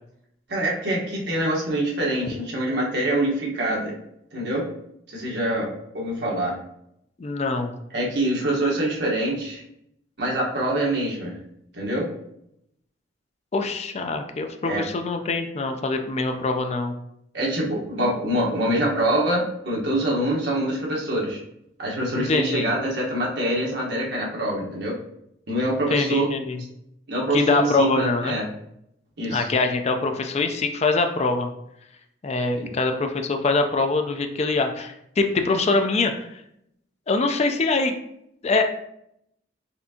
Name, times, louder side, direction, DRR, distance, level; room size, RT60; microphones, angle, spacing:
voice 1, 0.5-3.9 4.3-4.7 5.1-6.6 7.9-9.6 10.2-11.3 11.7-12.1 14.6-14.9 17.3-21.4 21.8-25.0 25.5-26.3 27.1-28.4 29.2-29.4 32.5-32.7, right 1 dB, 65° right, -4 dB, 1.2 m, -25 dB
voice 2, 7.2-7.7 13.5-16.9 22.2-22.6 25.9-26.6 27.3-28.4 29.3-31.5 32.2-36.3 37.1-37.9 38.4-38.6, left 3 dB, 35° left, 6 dB, 0.4 m, -23 dB
4.2 x 3.5 x 2.8 m, 0.76 s
head